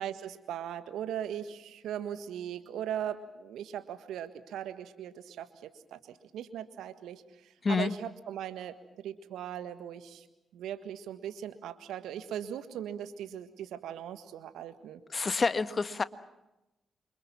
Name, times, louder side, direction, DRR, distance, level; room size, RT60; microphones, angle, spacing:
voice 1, 0.0-10.2 10.5-15.0, right 10 dB, 75° right, 11 dB, 1.6 m, -39 dB
voice 2, 15.1-16.0, left 4 dB, 40° left, 12 dB, 1.4 m, -28 dB
27.5 x 25.0 x 6.0 m, 0.96 s
hypercardioid pair, 40°, 0 cm